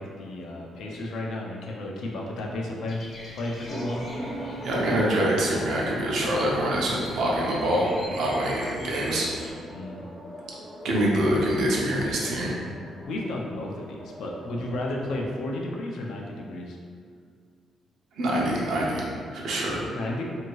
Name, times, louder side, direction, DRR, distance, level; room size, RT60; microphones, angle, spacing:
voice 1, 0.0-3.0 3.3-4.0 9.7-10.0 13.0-16.8 19.9-20.2, left 1 dB, 75° left, -1 dB, 0.5 m, -33 dB
Bird vocalization bird call bird song, 2.9-9.5, left 1 dB, 40° left, 0.7 m, -44 dB
sound 1, 3.7-15.3, equal, ahead, 0.5 m, -39 dB
voice 2, 4.6-9.3 10.8-12.5 18.2-19.8, right 1 dB, 75° right, -3 dB, 0.6 m, -25 dB
2.7 x 2.6 x 3.1 m, 2.1 s
cardioid pair, 125°, 0 cm